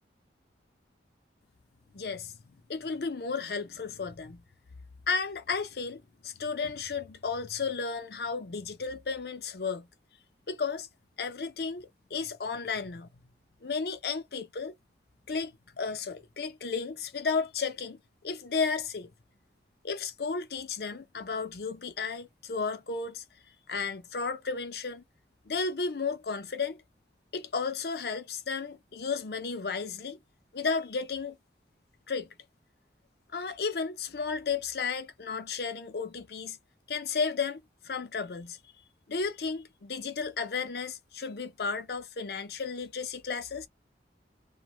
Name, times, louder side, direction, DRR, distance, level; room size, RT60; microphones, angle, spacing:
voice 1, 1.9-2.3 2.7-4.4 5.1-9.9 10.5-10.9 11.2-13.1 13.6-14.7 15.3-18.0 18.2-19.1 19.8-23.2 23.7-25.0 25.5-26.8 27.3-30.2 30.5-31.4 32.1-32.3 33.3-36.6 36.9-38.6 39.1-43.7, left 5 dB, 60° left, 0.6 m, -33 dB
2.5 x 2.2 x 3.0 m
head